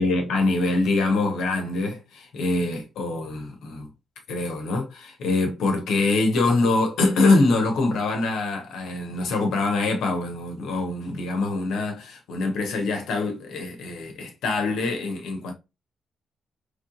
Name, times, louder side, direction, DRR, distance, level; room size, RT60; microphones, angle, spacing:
voice 1, 0.0-3.9 4.3-15.5, left 3 dB, 70° left, 1.1 m, -24 dB
3.8 x 3.4 x 2.5 m
hypercardioid pair, 40°, 0 cm